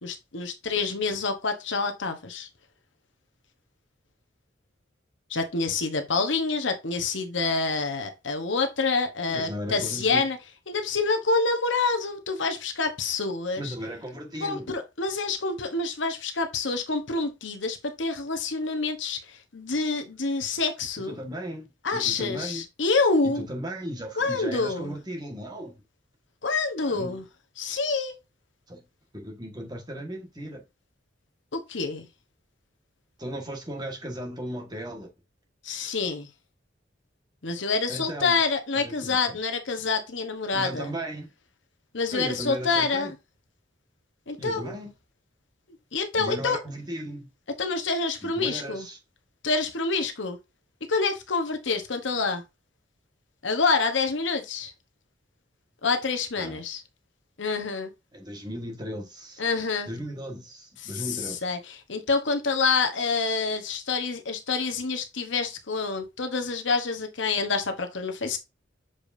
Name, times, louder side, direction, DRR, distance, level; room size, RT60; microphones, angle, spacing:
voice 1, 0.0-2.5 5.3-10.4 10.7-13.7 14.4-21.2 21.8-23.5 24.2-24.9 26.4-27.2 27.6-28.1 31.5-32.1 35.6-36.3 37.4-40.9 41.9-43.1 44.3-44.8 45.9-46.6 47.6-48.9 49.4-50.4 50.9-52.4 53.4-54.7 55.8-56.8 57.4-57.9 59.4-59.9 60.8-68.4, left 4 dB, 75° left, 1.2 m, -27 dB
voice 2, 9.3-10.3 13.6-14.7 21.1-22.6 23.2-25.8 26.8-27.2 28.7-28.8 29.1-30.6 33.2-35.1 37.9-38.4 38.7-39.4 40.5-41.3 42.1-43.1 44.4-44.9 46.2-47.3 48.2-49.0 56.3-56.6 58.1-59.4 59.9-61.4, equal, 20° right, 1.6 m, -36 dB
7.2 x 5.0 x 2.7 m
head